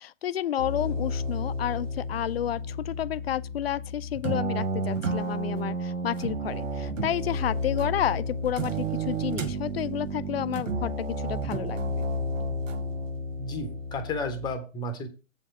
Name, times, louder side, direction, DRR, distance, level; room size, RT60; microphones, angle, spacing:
voice 1, 0.0-11.8, left 11 dB, 50° left, 0.5 m, -31 dB
sound 1, 0.6-14.5, right 1 dB, 75° right, 1.1 m, -31 dB
voice 2, 13.4-15.1, left 2 dB, 10° left, 0.8 m, -33 dB
7.5 x 4.3 x 5.4 m
figure-of-eight pair, 120°, 39 cm